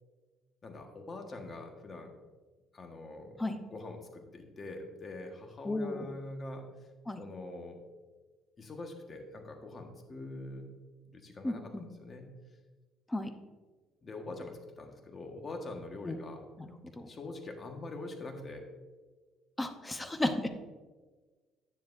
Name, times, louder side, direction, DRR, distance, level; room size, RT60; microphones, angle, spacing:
voice 1, 0.6-2.1 2.7-6.7 7.2-7.8 8.6-10.8 11.1-12.3 14.0-16.5 17.1-18.6, left 2 dB, 30° left, 3 dB, 1.4 m, -44 dB
voice 2, 5.6-6.1 7.1-7.2 11.4-11.9 13.1-13.3 16.0-16.2 16.6-17.1 19.6-20.5, left 1 dB, 10° left, 7 dB, 0.8 m, -34 dB
10.0 x 9.7 x 2.6 m, 1.3 s
cardioid pair, 105°, 0 cm